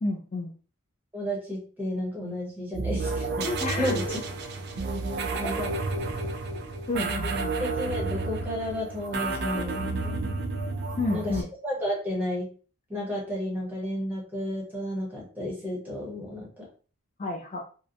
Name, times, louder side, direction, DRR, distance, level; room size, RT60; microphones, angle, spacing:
voice 1, 0.0-0.5 3.6-4.2 6.9-7.5 11.0-11.4 17.2-17.6, left 2 dB, 30° left, 1 dB, 0.3 m, -30 dB
voice 2, 1.1-4.2 5.4-5.7 7.2-10.4 11.1-12.5 12.9-16.6, equal, 10° right, -3 dB, 0.8 m, -32 dB
sound 1, 2.7-11.4, right 3 dB, 45° right, 0.3 m, -31 dB
2.7 x 2.1 x 2.5 m, 0.38 s
head